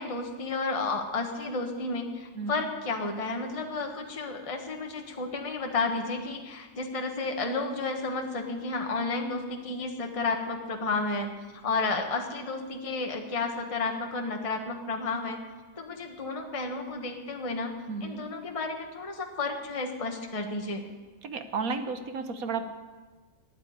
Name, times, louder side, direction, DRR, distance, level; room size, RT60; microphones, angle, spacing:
voice 1, 0.0-11.3 11.6-15.4 15.8-17.7 18.0-20.8, left 3 dB, 25° left, 3 dB, 1.3 m, -32 dB
voice 2, 17.9-18.2 21.2-22.7, right 4 dB, 70° right, 8 dB, 1.4 m, -33 dB
12.5 x 9.6 x 9.5 m, 1.3 s
omnidirectional pair, 1.6 m